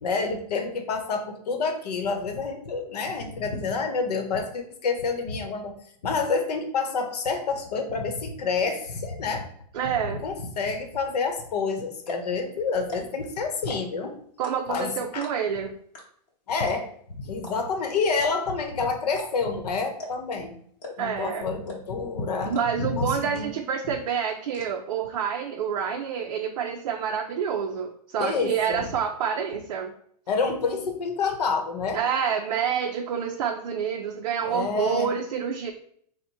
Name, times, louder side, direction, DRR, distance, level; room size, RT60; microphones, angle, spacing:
voice 1, 0.0-5.7 6.0-9.4 10.1-14.2 14.7-15.3 16.5-16.9 17.2-20.6 21.0-23.5 28.2-28.9 30.3-32.0 34.4-35.1, left 4 dB, 70° left, 5 dB, 0.9 m, -28 dB
voice 2, 9.7-10.2 14.4-15.7 21.0-21.4 22.4-29.9 31.9-35.7, right 7 dB, 55° right, 3 dB, 0.5 m, -28 dB
sound 1, 11.5-11.6 12.0-12.3 12.8-13.2 13.5-14.0 14.4-14.8 15.2-15.5 15.9-16.0 16.3-16.4 16.7-17.0 17.4-17.5 18.1-18.6 19.1-19.5 20.0-20.3 20.8-21.2 21.7-22.0 22.5-22.6 23.0-23.1 23.3-23.8 24.0-24.6, left 1 dB, 25° left, 1.0 m, -39 dB
4.1 x 2.2 x 4.5 m, 0.63 s
hypercardioid pair, 165°, 21 cm